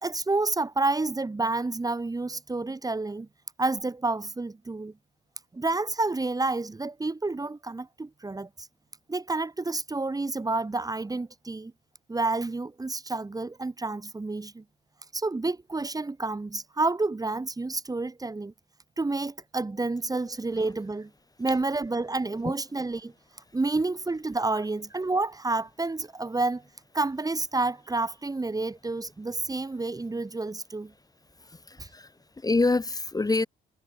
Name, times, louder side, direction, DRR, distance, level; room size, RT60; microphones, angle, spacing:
voice 1, 0.0-3.3 3.6-4.9 5.5-8.7 9.1-11.7 12.1-14.6 15.1-18.5 19.0-21.1 21.4-23.1 23.5-26.6 26.9-30.9 31.8-31.9, right 3 dB, 20° right, 1.5 m, -29 dB
voice 2, 31.4-33.5, left 3 dB, 20° left, 1.3 m, -27 dB
cardioid pair, 90°, 20 cm